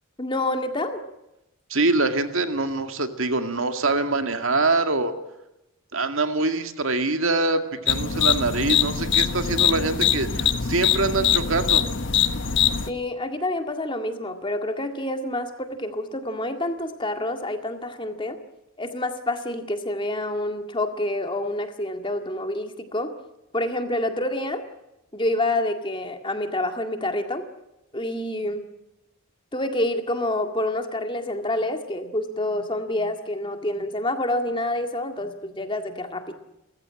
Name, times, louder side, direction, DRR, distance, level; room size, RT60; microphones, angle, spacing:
voice 1, 0.2-1.0 12.9-18.4 18.8-23.1 23.5-24.6 25.1-27.4 27.9-28.7 29.5-36.3, left 1 dB, 20° left, 6 dB, 1.9 m, -27 dB
voice 2, 1.7-5.1 5.9-11.8, right 3 dB, 65° right, 7 dB, 2.1 m, -24 dB
sound 1, 7.9-12.9, left 9 dB, 55° left, 1.3 m, -22 dB
30.0 x 15.0 x 8.7 m, 0.93 s
head